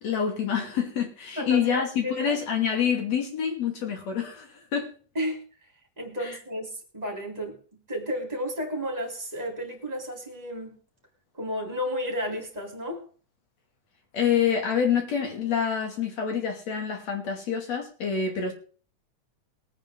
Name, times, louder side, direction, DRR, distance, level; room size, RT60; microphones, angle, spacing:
voice 1, 0.0-4.9 6.2-6.4 14.1-18.5, left 7 dB, 60° left, 3 dB, 3.7 m, -27 dB
voice 2, 1.4-2.4 5.2-5.4 6.0-7.5 7.9-10.8 11.4-13.1, equal, 15° right, 2 dB, 3.6 m, -32 dB
22.0 x 9.1 x 3.8 m, 0.42 s
omnidirectional pair, 3.4 m